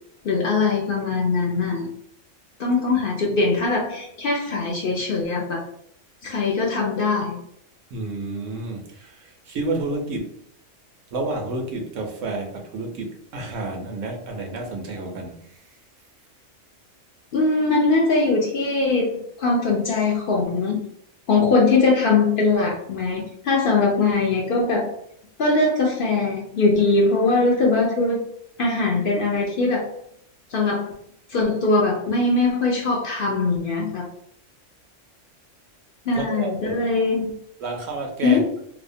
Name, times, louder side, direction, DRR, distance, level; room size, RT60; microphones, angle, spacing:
voice 1, 0.2-1.9 2.6-5.6 6.2-7.4 17.3-20.8 21.3-24.9 25.4-28.2 28.6-29.9 30.5-30.9 31.3-34.1 36.1-37.3 38.2-38.5, left 3 dB, 60° left, -1 dB, 0.6 m, -21 dB
voice 2, 7.9-10.3 11.1-15.4 36.1-36.8 37.6-38.4, right 2 dB, 90° right, 2 dB, 1.0 m, -30 dB
2.7 x 2.1 x 2.6 m, 0.70 s
omnidirectional pair, 1.3 m